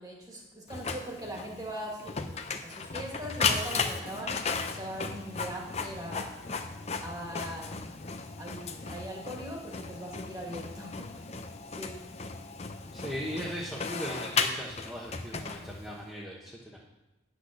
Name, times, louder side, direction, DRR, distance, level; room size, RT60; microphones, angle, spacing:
voice 1, 0.0-2.4 2.6-6.4 7.0-7.9 8.4-11.3 11.7-12.0, equal, 20° right, -1 dB, 2.0 m, -41 dB
Printer, 0.7-16.1, left 5 dB, 35° left, 0.6 m, -35 dB
voice 2, 12.9-16.8, equal, ahead, -6 dB, 1.1 m, -38 dB
9.9 x 6.2 x 6.5 m, 0.98 s
head